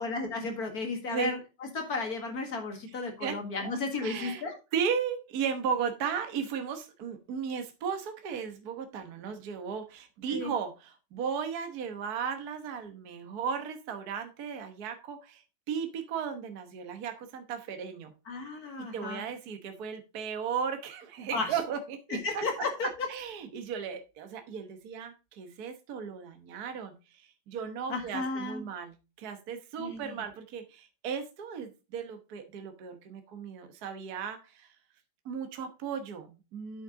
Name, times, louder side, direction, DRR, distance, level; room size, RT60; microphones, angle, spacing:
voice 1, 0.0-1.4 1.7-4.5 10.3-10.5 18.3-19.2 21.3-21.5 22.2-22.9 27.9-28.6 29.8-30.2, left 3 dB, 50° left, 3 dB, 2.3 m, -33 dB
voice 2, 2.9-3.7 4.0-4.4 4.7-18.1 18.8-22.4 23.1-34.7 35.2-36.8, right 7 dB, 55° right, 7 dB, 1.5 m, -36 dB
8.5 x 6.5 x 3.6 m, 0.29 s
omnidirectional pair, 2.2 m